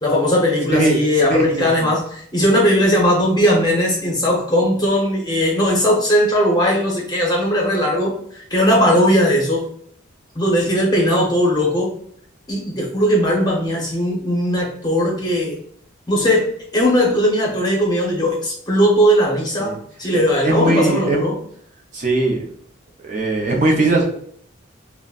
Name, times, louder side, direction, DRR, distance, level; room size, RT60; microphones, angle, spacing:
voice 1, 0.0-9.7 10.3-11.9 12.5-15.6 16.1-16.5 16.7-21.4, equal, 20° left, -2 dB, 0.7 m, -18 dB
voice 2, 1.3-1.9 19.6-19.8 20.1-21.2 21.9-22.4 23.0-24.0, right 2 dB, 35° right, -1 dB, 0.5 m, -19 dB
3.8 x 2.1 x 2.4 m, 0.63 s
head